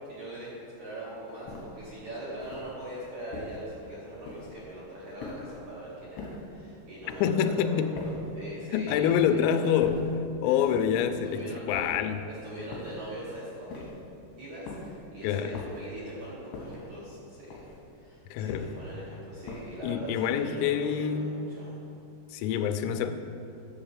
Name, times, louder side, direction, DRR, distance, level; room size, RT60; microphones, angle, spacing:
voice 1, 0.0-9.7 10.4-10.6 11.2-11.9 12.3-13.8 14.4-17.5 18.0-21.7, right 1 dB, 75° right, -8 dB, 1.7 m, -41 dB
sound 1, 1.5-1.9 2.4-2.8 3.3-3.7 4.3-4.7 5.2-5.6 6.2-6.5 7.1-7.4 8.0-8.4 8.9-9.3 9.8-10.2 10.7-11.2 11.7-12.2 12.7-13.1 13.7-14.1 14.7-15.0 15.5-16.0 16.5-16.9 17.5-17.9 18.5-18.9 19.5-19.9, left 3 dB, 70° left, 3.4 m, -42 dB
voice 2, 7.2-7.9 8.7-10.0 10.4-12.2 15.2-15.6 18.3-18.7 19.8-21.4 22.3-23.1, left 8 dB, 85° left, 7 dB, 3.1 m, -26 dB
10.5 x 4.3 x 7.4 m, 2.6 s
omnidirectional pair, 5.8 m